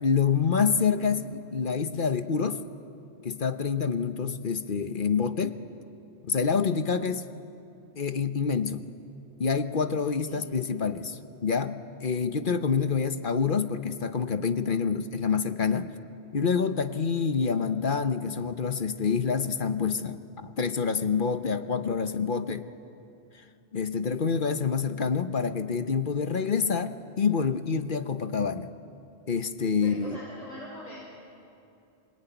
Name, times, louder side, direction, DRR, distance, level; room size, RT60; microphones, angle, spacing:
voice 1, 0.0-2.6 3.2-5.6 6.3-7.3 8.0-8.8 9.4-15.9 16.3-22.7 23.7-28.7 29.3-30.2, left 6 dB, 50° left, 10 dB, 1.0 m, -27 dB
voice 2, 29.7-30.9, left 1 dB, 35° left, -6 dB, 5.6 m, -42 dB
26.5 x 21.5 x 9.2 m, 2.8 s
omnidirectional pair, 1.2 m